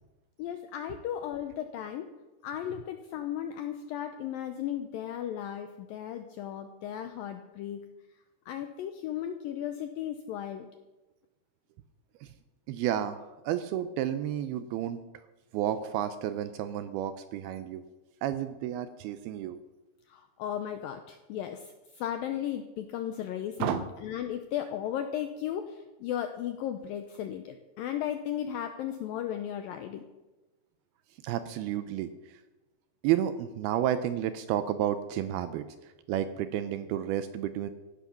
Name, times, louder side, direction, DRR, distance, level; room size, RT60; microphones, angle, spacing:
voice 1, 0.4-2.1 2.4-7.8 8.5-10.7 20.1-30.0, left 10 dB, 90° left, 8 dB, 2.0 m, -35 dB
voice 2, 12.7-15.0 15.5-17.8 18.2-19.6 23.6-23.9 31.2-32.4 33.0-37.7, right 11 dB, 80° right, 11 dB, 2.3 m, -31 dB
15.5 x 11.5 x 5.9 m, 1.1 s
omnidirectional pair, 4.9 m